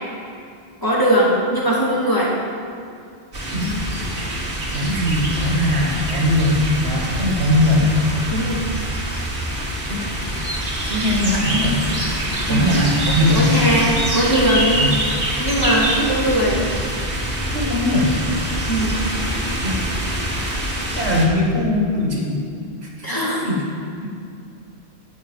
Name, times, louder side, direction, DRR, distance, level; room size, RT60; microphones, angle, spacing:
voice 1, 0.8-2.4 8.3-8.7 12.5-13.0 13.3-14.8 15.4-16.7 18.6-19.0 23.0-23.5, right 1 dB, 20° left, -5 dB, 2.5 m, -20 dB
sound 1, 3.3-21.3, right 1 dB, 60° right, 2.2 m, -25 dB
voice 2, 4.7-7.9 9.9-10.0 10.9-11.8 12.5-13.5 14.8-14.9 17.5-18.1 19.6-19.8 20.9-22.4 23.4-23.6 24.0-24.1, left 1 dB, 85° right, -2 dB, 2.4 m, -20 dB
12.0 x 9.1 x 7.3 m, 2.4 s
omnidirectional pair, 1.1 m